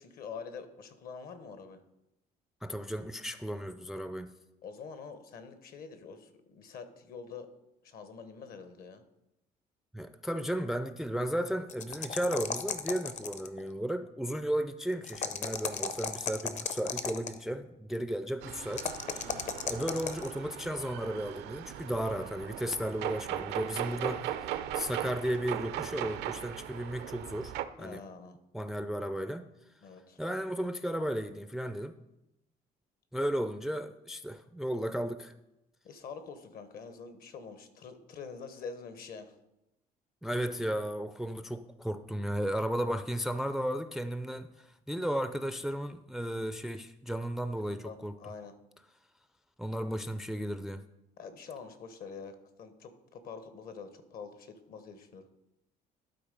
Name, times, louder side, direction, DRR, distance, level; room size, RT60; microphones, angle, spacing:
voice 1, 0.0-1.8 4.6-7.5 7.8-9.0 19.2-19.5 27.8-28.4 29.8-30.2 35.8-39.3 47.6-48.5 51.2-55.3, left 5 dB, 60° left, 10 dB, 1.1 m, -46 dB
voice 2, 2.6-4.3 9.9-19.3 19.7-28.0 28.5-29.5 30.2-31.9 33.1-35.3 40.2-48.2 49.6-50.8, equal, ahead, 11 dB, 0.3 m, -34 dB
sound 1, 11.7-13.6 15.0-17.4 18.7-20.3, left 5 dB, 45° left, 0.7 m, -35 dB
sound 2, 18.4-27.6, right 11 dB, 80° right, 0.5 m, -38 dB
12.0 x 4.0 x 5.2 m, 0.89 s
cardioid pair, 110°, 17 cm